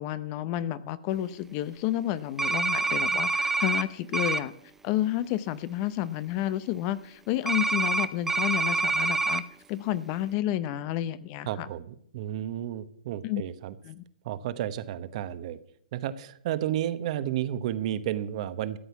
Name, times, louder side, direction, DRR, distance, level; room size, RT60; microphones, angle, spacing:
voice 1, 0.0-4.5 4.8-9.4 9.7-11.7 13.2-13.4 13.9-14.0, left 13 dB, 35° left, 16 dB, 0.8 m, -30 dB
sound 1, 2.4-3.8 4.1-4.4 7.5-9.4, right 3 dB, 5° right, 0.6 m, -26 dB
voice 2, 11.4-13.7 14.2-15.6 15.9-18.8, right 11 dB, 50° right, 13 dB, 1.1 m, -32 dB
13.5 x 8.0 x 7.1 m, 0.67 s
hypercardioid pair, 135°, 5 cm